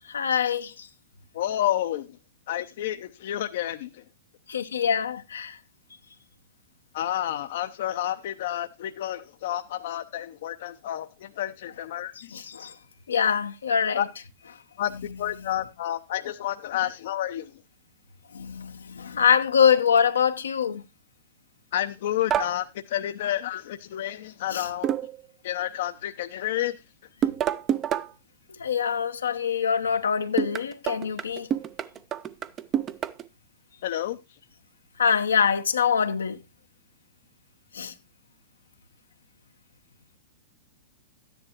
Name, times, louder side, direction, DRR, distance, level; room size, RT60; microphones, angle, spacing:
voice 1, 0.1-0.9 4.5-5.6 12.3-12.7 13.1-14.1 14.9-15.6 18.3-20.8 24.5-24.7 28.6-31.5 35.0-36.4 37.7-37.9, left 7 dB, 85° left, 0.9 m, -24 dB
voice 2, 1.3-2.0 2.5-3.9 6.9-12.1 13.9-14.0 14.8-14.9 15.2-17.5 21.7-24.9 25.4-26.7 33.8-34.2, left 12 dB, 60° left, 0.7 m, -30 dB
sound 1, 22.3-22.6 24.8-25.3 27.2-28.1 30.4-33.3, right 9 dB, 30° right, 0.6 m, -28 dB
12.5 x 10.0 x 2.9 m
hypercardioid pair, 115°, 0 cm